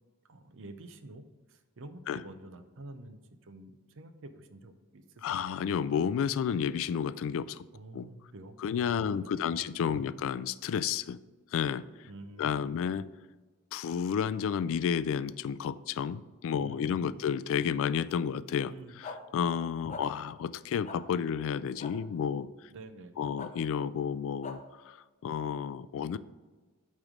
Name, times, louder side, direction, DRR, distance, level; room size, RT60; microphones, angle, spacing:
voice 1, 0.3-5.4 7.7-9.6 9.9-10.1 12.0-12.6 16.6-17.2 18.7-19.0 19.9-20.1 22.7-23.3, right 2 dB, 60° right, 9 dB, 0.6 m, -49 dB
voice 2, 5.2-7.7 7.9-8.1 8.6-11.2 11.5-11.8 12.4-13.1 13.7-18.7 19.3-22.5 23.2-24.6 24.9-25.0 25.2-26.2, left 7 dB, 65° left, 17 dB, 0.3 m, -31 dB
sound 1, 19.0-19.2 19.9-20.0 20.8-21.0 21.8-21.9 23.4-23.5 24.4-24.6, left 4 dB, 35° left, 0.7 m, -40 dB
8.7 x 3.2 x 6.4 m, 1.3 s
head